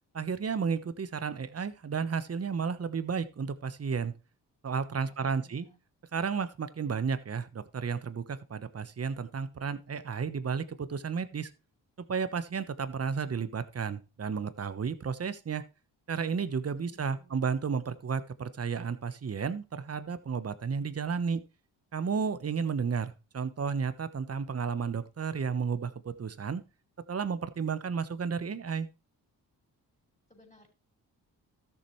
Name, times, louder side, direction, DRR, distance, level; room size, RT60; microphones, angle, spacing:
voice 1, 0.1-4.1 4.6-5.7 6.1-11.5 12.1-15.6 16.1-21.4 21.9-26.6 27.1-28.9, right 6 dB, 40° right, 13 dB, 1.1 m, -32 dB
voice 2, 5.0-5.8 16.7-17.5 30.3-30.7, right 1 dB, 20° left, 1 dB, 5.3 m, -60 dB
13.0 x 7.2 x 3.2 m, 0.30 s
supercardioid pair, 55°, 38 cm